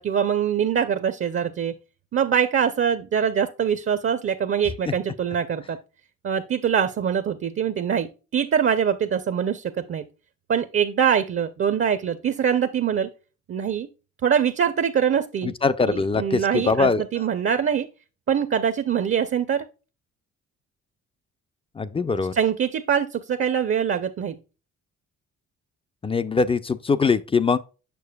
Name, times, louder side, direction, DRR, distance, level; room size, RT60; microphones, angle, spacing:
voice 1, 0.0-1.8 2.1-5.8 6.2-10.0 10.5-13.1 13.5-13.9 14.2-15.5 15.9-17.9 18.3-19.6 22.3-24.4, right 8 dB, 40° right, 0.6 m, -23 dB
voice 2, 15.4-17.0 21.8-22.3 26.0-27.6, left 4 dB, 20° left, 0.4 m, -22 dB
6.8 x 6.2 x 2.2 m
cardioid pair, 90°, 30 cm